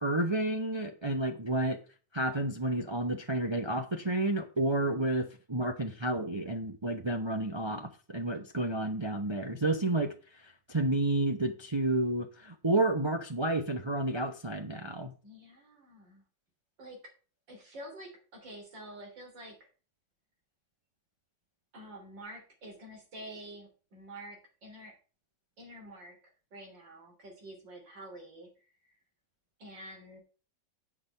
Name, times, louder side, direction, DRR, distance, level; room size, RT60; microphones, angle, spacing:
voice 1, 0.0-1.8 2.1-10.1 10.7-15.1, right 2 dB, 40° right, 0.4 m, -30 dB
voice 2, 15.2-16.2 16.8-17.0 17.5-19.6 21.7-24.9 25.6-26.2 26.5-28.7 29.6-30.2, right 1 dB, 90° right, 3.8 m, -48 dB
8.6 x 6.0 x 5.3 m
omnidirectional pair, 1.9 m